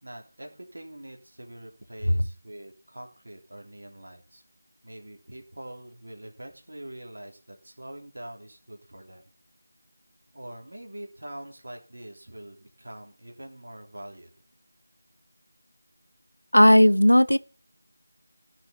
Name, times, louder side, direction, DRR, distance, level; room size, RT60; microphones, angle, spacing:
voice 1, 0.0-4.4 4.8-9.2 10.3-14.3, right 1 dB, 55° right, 3.4 m, -44 dB
voice 2, 16.5-17.4, equal, 85° left, 1.0 m, -15 dB
16.0 x 6.6 x 5.2 m
figure-of-eight pair, 165°, 0 cm